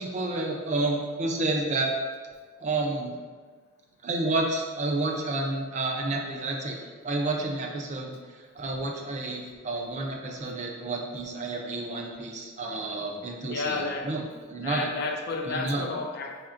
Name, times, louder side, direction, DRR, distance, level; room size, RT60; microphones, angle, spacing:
voice 1, 0.0-1.9 2.6-3.2 4.0-6.8 7.0-8.2 8.6-14.9 15.5-15.9, right 2 dB, 30° right, 0 dB, 0.4 m, -30 dB
voice 2, 13.5-14.1 14.5-16.4, left 3 dB, 45° left, 2 dB, 0.4 m, -31 dB
4.3 x 3.2 x 2.5 m, 1.5 s
head